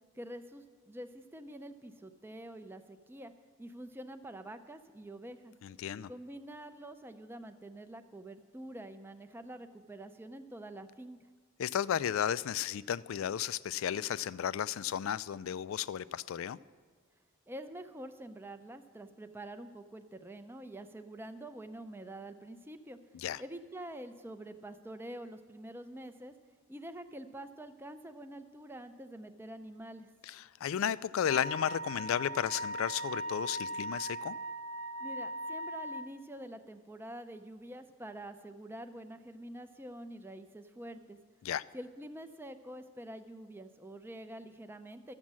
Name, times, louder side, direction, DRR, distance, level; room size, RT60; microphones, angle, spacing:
voice 1, 0.1-3.3 3.6-5.5 6.1-11.2 17.5-23.0 23.4-26.3 26.7-30.1 35.0-41.2 41.7-45.1, right 1 dB, 10° right, 8 dB, 0.4 m, -46 dB
voice 2, 5.6-6.1 11.6-16.6 23.1-23.4 30.2-34.4 41.4-41.6, left 9 dB, 65° left, 18 dB, 0.3 m, -34 dB
Wind instrument woodwind instrument, 31.3-36.1, right 1 dB, 80° right, 0.6 m, -39 dB
12.5 x 7.3 x 7.4 m, 1.5 s
head